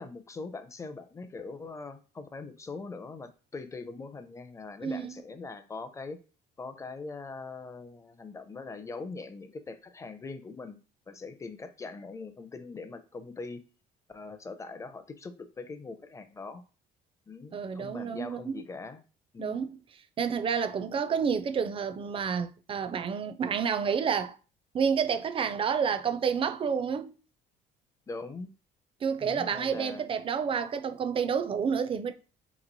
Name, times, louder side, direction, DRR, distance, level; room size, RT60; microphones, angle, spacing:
voice 1, 0.0-6.2 6.6-10.8 11.1-13.6 14.1-16.6 17.3-19.0 19.3-19.6 28.1-28.5 29.2-30.1, left 3 dB, 20° left, 0.5 m, -42 dB
voice 2, 4.8-5.2 17.5-18.6 19.4-19.8 20.2-24.4 24.7-27.2 29.0-32.1, right 6 dB, 30° right, 0.4 m, -29 dB
3.0 x 2.8 x 4.0 m
cardioid pair, 110°, 17 cm